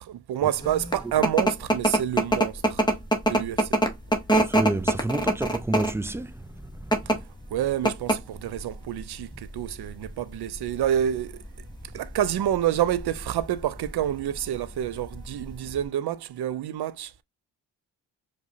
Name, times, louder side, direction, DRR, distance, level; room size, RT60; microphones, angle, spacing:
voice 1, 0.1-2.8 3.3-3.7 7.5-11.4 11.9-17.1, right 11 dB, 60° right, 0.6 m, -28 dB
sound 1, 0.6-15.8, right 1 dB, 10° left, 1.0 m, -26 dB
voice 2, 4.3-6.3, right 2 dB, 5° right, 0.3 m, -29 dB
4.7 x 2.3 x 2.6 m
supercardioid pair, 55°, 45 cm